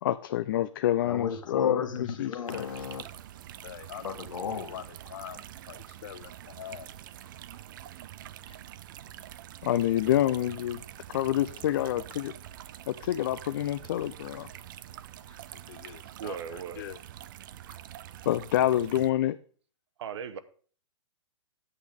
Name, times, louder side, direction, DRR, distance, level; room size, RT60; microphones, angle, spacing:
voice 1, 0.0-2.7 3.6-4.0 4.7-4.8 5.1-5.4 5.7-6.3 6.6-6.9 9.6-10.8 11.1-12.3 12.9-14.5 15.7-16.4 16.8-17.0 18.3-19.4, left 12 dB, 40° left, 0.4 m, -29 dB
voice 2, 1.0-3.0 4.0-5.3 8.5-8.6 15.3-15.4, left 7 dB, 80° left, 1.6 m, -33 dB
sound 1, 2.5-19.1, right 12 dB, 40° right, 0.4 m, -46 dB
voice 3, 16.2-16.9 20.0-20.4, right 7 dB, 60° right, 1.0 m, -37 dB
9.8 x 8.3 x 3.5 m
hypercardioid pair, 155°, 16 cm